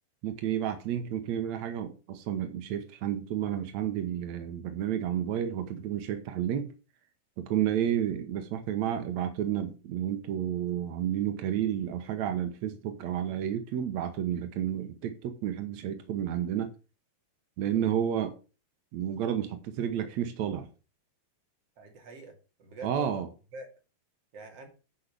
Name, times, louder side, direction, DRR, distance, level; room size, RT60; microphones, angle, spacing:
voice 1, 0.2-6.7 7.4-16.7 17.6-18.3 18.9-20.7 22.8-23.3, right 10 dB, 80° right, 1.6 m, -31 dB
voice 2, 21.8-23.3 23.5-23.7 24.3-24.7, right 2 dB, 40° right, 3.4 m, -45 dB
10.0 x 5.6 x 6.8 m
omnidirectional pair, 4.8 m